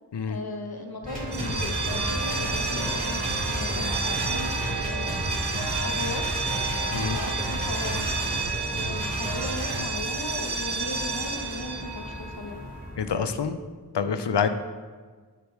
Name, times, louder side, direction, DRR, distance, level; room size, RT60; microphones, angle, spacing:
voice 1, 0.3-5.1 5.4-5.5 5.8-6.4 7.0-8.1 8.7-12.6, left 2 dB, 65° left, 4 dB, 0.9 m, -37 dB
sound 1, 1.0-13.2, left 1 dB, 20° left, 1.1 m, -40 dB
sound 2, 1.1-9.8, equal, 20° right, 2.3 m, -31 dB
sound 3, 1.2-12.9, right 4 dB, 75° right, 0.9 m, -31 dB
voice 2, 13.0-13.6 13.9-14.5, left 6 dB, 85° left, 10 dB, 0.6 m, -26 dB
9.1 x 6.8 x 3.1 m, 1.5 s
wide cardioid pair, 50°, 41 cm